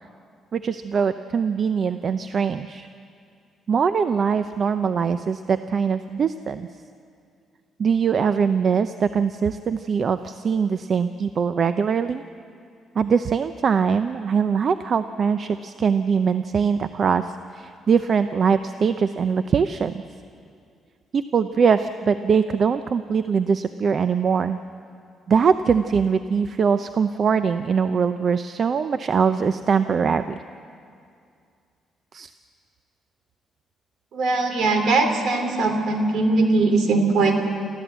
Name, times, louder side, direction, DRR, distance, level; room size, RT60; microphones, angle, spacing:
voice 1, 0.5-2.9 3.7-6.7 7.8-12.2 13.0-17.2 17.5-20.0 21.1-24.6 25.3-30.4 32.1-32.3, right 6 dB, 50° right, 11 dB, 0.6 m, -22 dB
voice 2, 34.1-37.4, right 3 dB, 70° right, 6 dB, 3.1 m, -20 dB
27.0 x 14.5 x 8.1 m, 2.4 s
cardioid pair, 90°, 0 cm